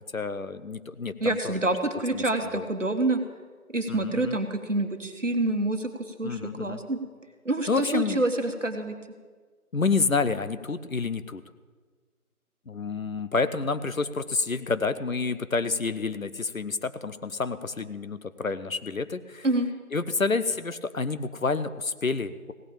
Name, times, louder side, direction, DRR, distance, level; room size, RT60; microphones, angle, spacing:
voice 1, 0.0-1.6 2.1-2.7 3.9-4.4 6.2-6.8 7.7-8.2 9.7-11.4 12.7-19.5 19.9-22.5, left 4 dB, 65° left, 13 dB, 0.7 m, -29 dB
voice 2, 1.2-3.2 3.7-5.9 6.2-7.0 7.4-8.9 19.4-19.7, right 2 dB, 55° right, 6 dB, 1.3 m, -27 dB
16.5 x 5.8 x 8.7 m, 1.5 s
figure-of-eight pair, 175°, 44 cm